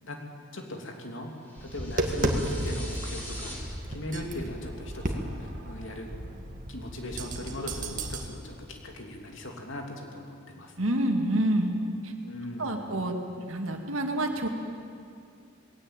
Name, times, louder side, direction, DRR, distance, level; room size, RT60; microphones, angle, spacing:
voice 1, 0.5-1.3 1.6-6.1 6.7-10.7 12.2-12.8, left 1 dB, 65° left, 2 dB, 2.9 m, -39 dB
sound 1, 1.4-3.6, equal, 10° left, 4.0 m, -43 dB
Tap, 1.6-8.3, right 1 dB, 40° right, 1.8 m, -33 dB
voice 2, 10.8-11.7 12.0-12.1 12.6-13.1 13.5-14.5, right 1 dB, 75° right, 4 dB, 2.2 m, -27 dB
20.0 x 17.0 x 9.0 m, 2.4 s
head